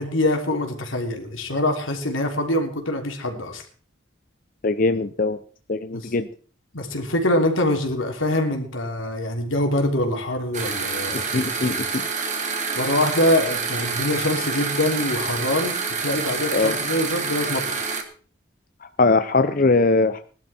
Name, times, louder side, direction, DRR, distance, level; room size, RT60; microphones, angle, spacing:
voice 1, 0.0-3.6 5.9-6.1 6.7-11.8 12.7-15.7 16.0-17.6, left 1 dB, 85° left, 4 dB, 3.3 m, -24 dB
voice 2, 4.6-5.4 5.7-6.3 11.1-12.1 16.5-16.8 18.8-20.2, left 3 dB, 45° left, 10 dB, 0.7 m, -21 dB
sound 1, 10.5-18.0, right 4 dB, 40° right, 2.4 m, -27 dB
19.5 x 12.0 x 4.4 m, 0.42 s
head